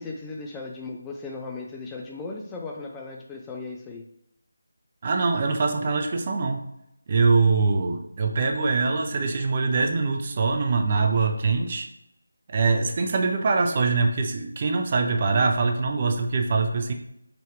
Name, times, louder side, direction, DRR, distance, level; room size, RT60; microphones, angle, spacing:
voice 1, 0.0-4.1, left 3 dB, 10° left, 0 dB, 0.4 m, -37 dB
voice 2, 5.0-6.6 7.1-11.9 12.5-16.9, right 4 dB, 35° right, 4 dB, 0.8 m, -23 dB
5.2 x 4.5 x 4.6 m, 0.80 s
figure-of-eight pair, 160°, 0 cm